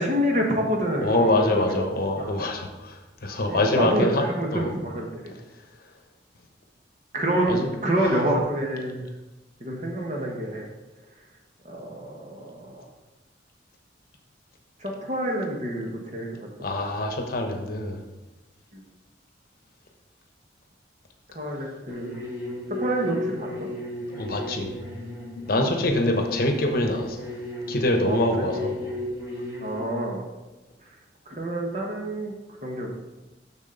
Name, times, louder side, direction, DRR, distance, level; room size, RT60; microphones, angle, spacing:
voice 1, 0.0-1.9 2.2-2.3 3.5-5.3 7.1-9.1 9.6-10.7 11.6-12.8 14.8-16.3 16.6-16.8 21.3-22.2 22.8-23.7 25.6-25.7 25.9-26.0 28.0-28.5 29.6-30.2 31.3-32.3 32.6-32.9, right 1 dB, 40° right, 0 dB, 1.3 m, -27 dB
voice 2, 1.0-4.2 4.5-4.7 7.5-7.7 16.6-18.0 24.1-24.7 25.5-27.2 27.7-28.9, left 1 dB, 55° left, 4 dB, 0.9 m, -24 dB
sound 1, 21.9-29.8, left 1 dB, 15° right, 2.2 m, -35 dB
7.3 x 6.2 x 3.9 m, 1.1 s
head